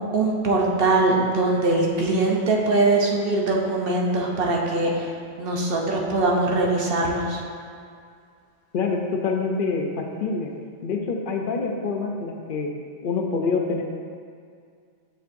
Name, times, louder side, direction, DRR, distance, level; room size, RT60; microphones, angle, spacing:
voice 1, 0.0-5.1 5.4-7.4, right 2 dB, 60° right, -1 dB, 0.9 m, -22 dB
voice 2, 8.7-10.5 10.8-12.7 13.0-13.8, left 4 dB, 60° left, 2 dB, 0.7 m, -26 dB
6.9 x 6.3 x 2.6 m, 2.2 s
omnidirectional pair, 1.1 m